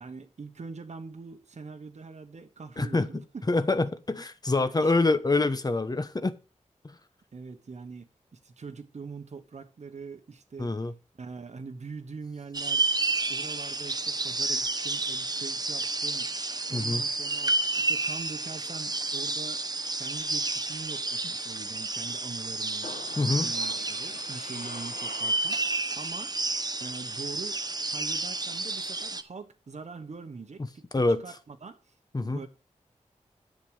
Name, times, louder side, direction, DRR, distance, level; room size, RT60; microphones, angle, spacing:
voice 1, 0.0-3.4 4.6-5.2 7.3-10.9 11.2-16.3 16.7-19.7 20.0-26.5 26.8-32.0 32.2-32.5, right 4 dB, 60° right, 1.1 m, -43 dB
voice 2, 2.8-6.3 6.8-7.0 10.6-10.9 16.7-17.0 23.2-23.5 30.9-31.2 32.1-32.4, left 2 dB, 30° left, 1.0 m, -26 dB
sound 1, 12.5-29.2, right 3 dB, 30° right, 0.9 m, -31 dB
sound 2, 22.8-25.8 26.1-26.2, left 4 dB, 80° left, 1.6 m, -44 dB
10.5 x 7.6 x 4.9 m
wide cardioid pair, 105°, 13 cm